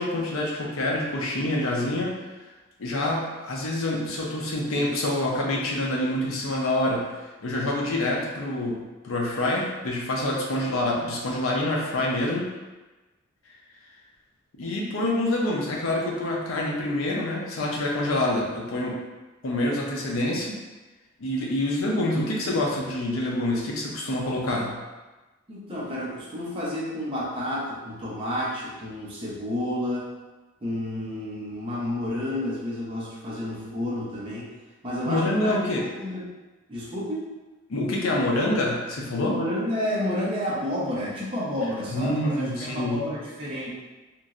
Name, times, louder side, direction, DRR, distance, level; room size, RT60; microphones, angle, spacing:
voice 1, 0.0-2.2 2.8-7.1 7.4-12.5 14.6-19.0 19.4-20.6 21.2-24.8 35.1-35.8 37.7-39.4 41.9-43.0, left 1 dB, 85° left, -2 dB, 0.6 m, -26 dB
voice 2, 25.5-30.1 30.6-34.5 34.8-35.6 35.9-36.2 36.7-37.3 39.3-43.7, left 1 dB, 25° right, -7 dB, 0.7 m, -30 dB
2.9 x 2.6 x 2.4 m, 1.2 s
head